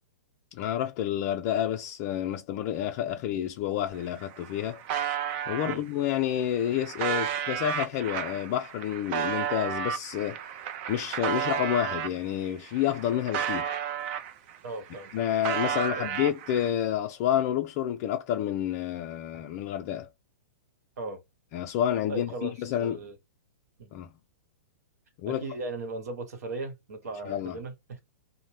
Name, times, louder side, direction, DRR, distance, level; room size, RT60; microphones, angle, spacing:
voice 1, 0.5-4.8 5.5-10.4 10.9-13.7 15.1-20.1 21.5-23.0 23.9-24.1 25.2-25.5 27.3-27.6, left 11 dB, 40° left, 0.3 m, -29 dB
sound 1, 3.9-4.0 4.2-5.8 6.4-12.2 12.6-14.6 14.9-16.7, right 8 dB, 45° right, 0.5 m, -32 dB
voice 2, 14.6-15.2 16.0-16.1 21.0-21.2 22.1-23.1 23.8-23.9 25.3-28.0, right 3 dB, 65° right, 1.1 m, -37 dB
2.6 x 2.1 x 3.1 m
hypercardioid pair, 135°, 9 cm